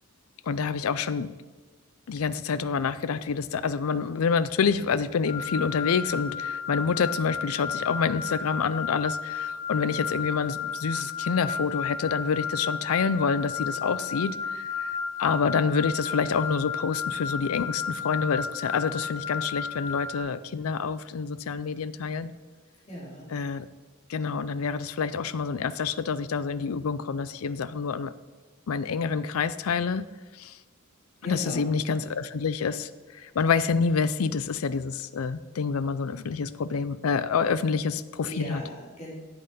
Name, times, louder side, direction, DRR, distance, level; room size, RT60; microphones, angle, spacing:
voice 1, 0.4-1.3 2.1-22.3 23.3-23.7 24.1-28.1 28.7-30.0 30.3-30.6 31.2-38.6, left 5 dB, 85° left, 15 dB, 0.5 m, -27 dB
sound 1, 5.3-20.2, left 6 dB, 55° left, 1.4 m, -33 dB
voice 2, 22.8-23.3 31.2-31.7 33.2-33.4 38.2-39.1, equal, 30° left, -5 dB, 4.2 m, -38 dB
10.5 x 7.9 x 5.2 m, 1.3 s
head